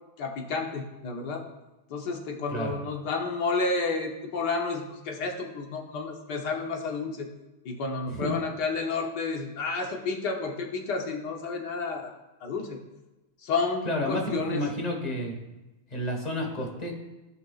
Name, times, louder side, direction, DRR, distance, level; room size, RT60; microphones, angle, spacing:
voice 1, 0.2-1.4 1.9-7.3 7.6-12.1 12.4-12.8 13.4-14.6, left 4 dB, 60° left, 2 dB, 1.4 m, -31 dB
voice 2, 13.8-15.4 15.9-16.9, left 1 dB, 25° left, 0 dB, 1.2 m, -30 dB
15.5 x 5.8 x 2.4 m, 1.1 s
omnidirectional pair, 2.4 m